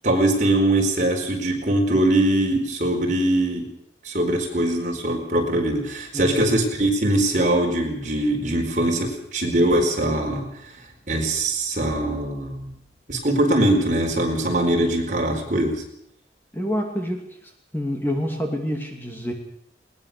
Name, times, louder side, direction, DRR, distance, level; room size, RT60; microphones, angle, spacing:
voice 1, 0.0-3.6 4.0-10.5 11.1-12.7 13.1-15.8, right 1 dB, 45° right, 2 dB, 4.5 m, -22 dB
voice 2, 6.1-6.5 16.5-17.2 17.7-19.3, equal, 10° left, 2 dB, 2.6 m, -27 dB
20.5 x 19.5 x 6.8 m, 0.72 s
head